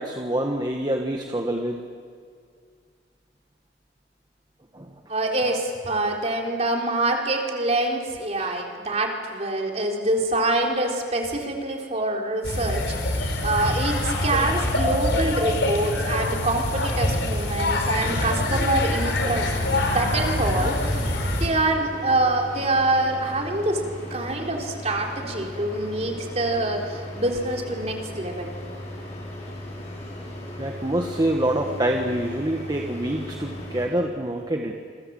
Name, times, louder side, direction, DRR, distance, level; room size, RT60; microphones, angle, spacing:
voice 1, 0.0-1.8 4.7-4.9 8.4-8.5 30.6-34.7, right 1 dB, 25° right, 3 dB, 1.5 m, -26 dB
voice 2, 5.1-19.5 19.9-23.8 24.1-28.5, right 2 dB, 40° right, 1 dB, 3.9 m, -25 dB
sound 1, 12.4-21.5, left 1 dB, 85° left, 4.2 m, -25 dB
sound 2, 18.8-33.9, left 1 dB, 40° left, 6.8 m, -37 dB
28.0 x 23.0 x 7.8 m, 2.2 s
head